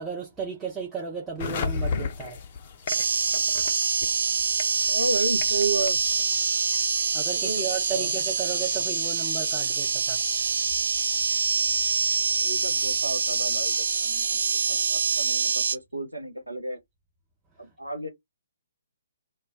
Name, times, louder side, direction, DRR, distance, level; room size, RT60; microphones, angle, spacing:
voice 1, 0.0-2.4 7.1-10.2, right 6 dB, 10° right, 0.6 m, -34 dB
sound 1, 1.4-13.7, left 5 dB, 35° left, 0.5 m, -38 dB
sound 2, 2.9-15.8, right 5 dB, 55° right, 0.4 m, -25 dB
voice 2, 4.8-6.0 7.3-8.1 12.4-13.7 14.0-16.8 17.6-18.1, right 3 dB, 85° right, 0.7 m, -32 dB
2.2 x 2.2 x 3.5 m
figure-of-eight pair, 130°, 0 cm